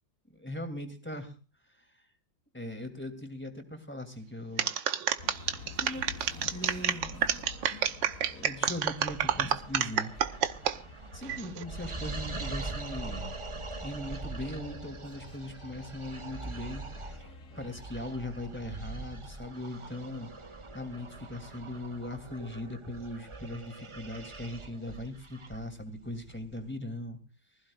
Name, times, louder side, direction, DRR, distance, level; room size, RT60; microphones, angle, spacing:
voice 1, 0.3-1.3 1.7-2.0 2.5-4.7 5.8-6.1 6.5-7.3 8.3-10.1 11.1-13.3 13.8-17.1 17.6-20.3 20.7-27.2, left 1 dB, 5° left, 6 dB, 2.8 m, -39 dB
sound 1, 4.6-10.8 11.2-11.6, right 9 dB, 85° right, 1.7 m, -28 dB
sound 2, 5.2-17.9, left 3 dB, 50° left, 1.9 m, -49 dB
sound 3, 7.0-26.7, right 3 dB, 40° right, 0.4 m, -43 dB
24.5 x 15.5 x 2.5 m, 0.34 s
omnidirectional pair, 2.0 m